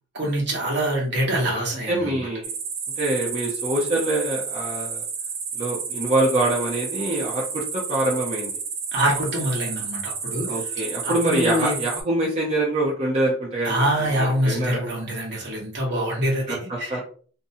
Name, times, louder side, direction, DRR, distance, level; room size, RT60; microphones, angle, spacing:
voice 1, 0.1-2.2 8.9-10.5 11.0-11.7 13.6-16.9, right 1 dB, 60° right, -2 dB, 1.1 m, -25 dB
voice 2, 1.9-2.5 3.0-5.0 5.5-8.6 10.5-14.8 16.5-17.1, right 1 dB, 35° right, -4 dB, 0.6 m, -25 dB
sound 1, 2.4-12.0, right 6 dB, 75° right, 0.6 m, -31 dB
2.6 x 2.2 x 2.7 m, 0.43 s
head